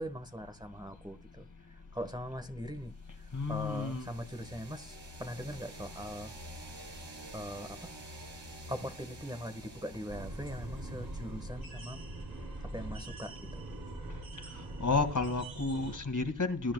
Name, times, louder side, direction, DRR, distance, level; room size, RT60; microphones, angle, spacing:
voice 1, 0.0-1.4 1.9-2.9 3.5-6.3 7.3-7.9 8.7-12.0 12.6-13.6, equal, 10° right, 1.4 m, -41 dB
sound 1, 3.0-11.7, right 1 dB, 70° right, 6.2 m, -49 dB
voice 2, 3.3-4.1 14.8-16.7, left 3 dB, 45° left, 2.1 m, -31 dB
sound 2, 10.1-16.0, right 2 dB, 55° right, 3.4 m, -42 dB
20.5 x 10.0 x 2.3 m
cardioid pair, 50°, 43 cm